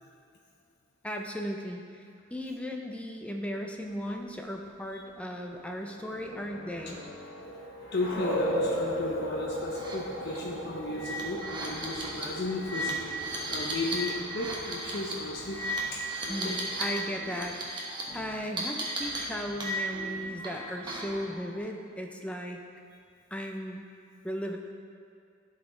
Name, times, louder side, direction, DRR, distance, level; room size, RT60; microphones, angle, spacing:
voice 1, 1.0-1.8 2.3-7.0 16.3-22.6 23.3-23.8 24.2-24.6, equal, 5° left, 2 dB, 0.5 m, -36 dB
sound 1, 5.5-16.9, equal, 70° left, 1.3 m, -37 dB
voice 2, 7.9-15.7 15.9-16.0 16.4-16.6, left 2 dB, 55° left, -2 dB, 0.6 m, -35 dB
sound 2, 9.7-9.9 10.3-10.4 10.9-17.0 17.2-18.0 18.6-20.1 20.4-21.2, right 1 dB, 25° right, 1.1 m, -35 dB
sound 3, 11.0-11.2 11.6-13.0 13.5-13.9 14.4-14.9 15.3-21.6, equal, 75° right, 1.2 m, -50 dB
11.5 x 4.1 x 3.7 m, 2.3 s
head